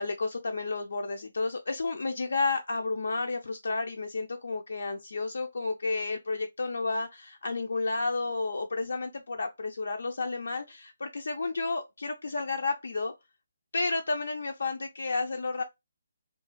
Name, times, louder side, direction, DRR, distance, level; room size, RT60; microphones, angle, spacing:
voice 1, 0.0-13.1 13.7-15.6, left 3 dB, 70° left, 0.3 m, -31 dB
2.3 x 2.3 x 2.9 m
figure-of-eight pair, 145°, 0 cm